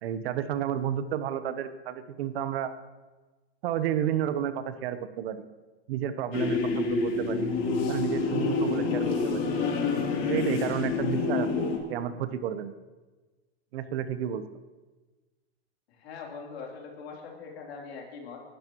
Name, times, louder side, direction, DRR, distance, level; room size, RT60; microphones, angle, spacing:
voice 1, 0.0-2.7 3.6-5.4 5.9-7.5 7.9-9.4 10.3-12.7 13.7-14.4, right 10 dB, 65° right, 11 dB, 1.1 m, -31 dB
sound 1, 6.3-11.8, left 4 dB, 60° left, 3.4 m, -27 dB
voice 2, 16.0-18.4, left 5 dB, 75° left, -1 dB, 3.6 m, -42 dB
21.0 x 12.0 x 3.1 m, 1.2 s
hypercardioid pair, 115°, 31 cm